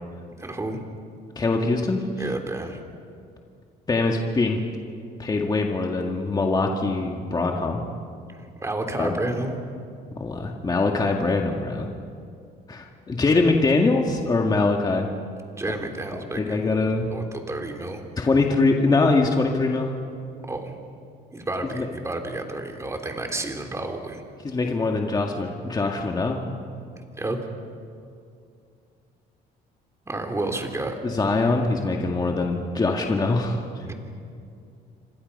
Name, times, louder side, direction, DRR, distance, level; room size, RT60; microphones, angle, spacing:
voice 1, 0.4-0.8 2.2-2.8 8.4-9.6 15.6-16.7 17.1-18.0 20.5-20.8 21.3-24.2 27.2-27.4 30.1-30.9 33.9-34.0, right 2 dB, 15° right, 4 dB, 3.3 m, -30 dB
voice 2, 1.4-2.0 3.9-4.6 5.2-7.8 9.0-9.2 10.2-11.9 12.7-15.1 16.3-17.1 18.2-19.9 21.8-21.9 24.4-26.4 31.0-33.9, left 3 dB, 25° left, 1 dB, 1.9 m, -23 dB
28.5 x 25.0 x 5.5 m, 2.4 s
cardioid pair, 110°, 17 cm